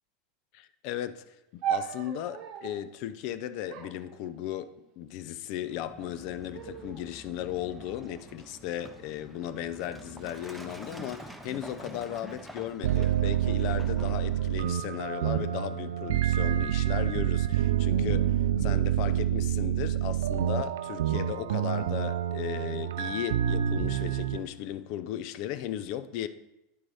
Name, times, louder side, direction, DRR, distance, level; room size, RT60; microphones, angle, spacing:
voice 1, 0.5-26.3, left 11 dB, 60° left, 0.5 m, -36 dB
sound 1, 1.6-2.9 3.7-4.9 5.7-6.2 6.5-7.1 7.8-9.1 9.8-10.3, right 10 dB, 55° right, 0.9 m, -38 dB
Truck, 5.7-16.0, equal, ahead, 0.8 m, -48 dB
sound 2, 12.8-24.4, right 11 dB, 75° right, 0.4 m, -27 dB
10.0 x 4.5 x 4.1 m
hypercardioid pair, 95°, 0 cm